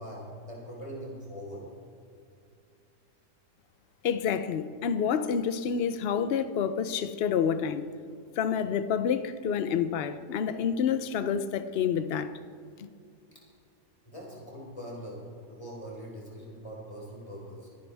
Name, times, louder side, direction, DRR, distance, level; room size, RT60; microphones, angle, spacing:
voice 1, 0.0-1.7 14.0-17.7, equal, 20° left, 4.1 m, -42 dB
voice 2, 4.0-7.9 8.4-12.4, left 7 dB, 60° left, 0.6 m, -28 dB
24.5 x 10.5 x 3.5 m
omnidirectional pair, 1.8 m